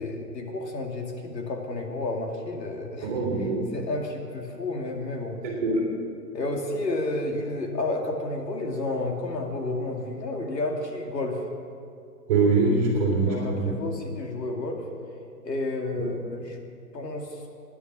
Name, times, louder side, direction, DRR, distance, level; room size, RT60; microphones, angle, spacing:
voice 1, 0.0-5.4 6.3-11.5 13.3-14.8 15.4-16.6 16.9-17.3, left 2 dB, 80° left, 2 dB, 2.4 m, -31 dB
voice 2, 3.0-3.7 5.4-5.9 12.3-13.7 16.0-16.1, right 3 dB, 25° right, -2 dB, 2.4 m, -23 dB
16.5 x 9.9 x 6.0 m, 2.4 s
hypercardioid pair, 170°, 50 cm